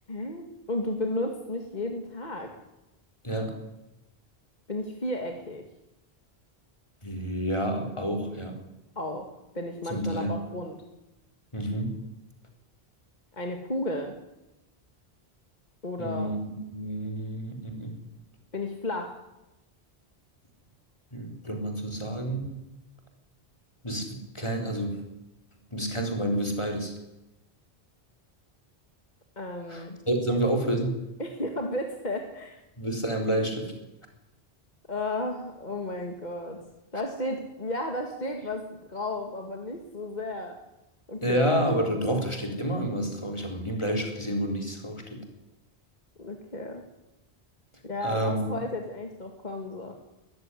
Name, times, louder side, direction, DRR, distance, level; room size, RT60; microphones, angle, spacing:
voice 1, 0.1-2.5 4.7-5.6 9.0-10.8 13.3-14.1 15.8-16.3 18.5-19.2 29.4-30.0 31.2-32.6 34.9-36.6 36.9-40.6 41.1-41.5 46.2-46.8 47.8-49.9, left 1 dB, 45° left, 3 dB, 2.2 m, -33 dB
voice 2, 3.2-3.6 7.0-8.6 9.9-10.4 11.5-11.9 16.0-16.4 16.7-17.9 21.1-22.5 23.8-25.0 25.7-26.9 29.7-31.0 32.8-33.7 41.2-45.2 48.0-48.4, right 1 dB, 30° left, 3 dB, 4.0 m, -29 dB
20.5 x 14.5 x 9.9 m, 0.95 s
omnidirectional pair, 1.1 m